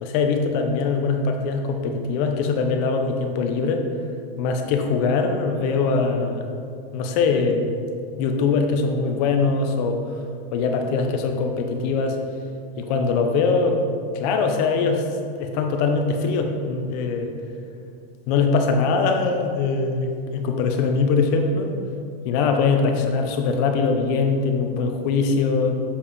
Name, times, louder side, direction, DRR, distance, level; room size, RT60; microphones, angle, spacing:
voice 1, 0.0-3.9 4.4-6.5 6.9-7.7 8.2-10.2 10.5-12.2 12.8-13.8 14.1-15.1 15.4-17.3 18.3-21.7 22.2-25.7, left 4 dB, 40° left, 4 dB, 0.8 m, -22 dB
7.1 x 4.8 x 5.4 m, 2.4 s
supercardioid pair, 160°, 31 cm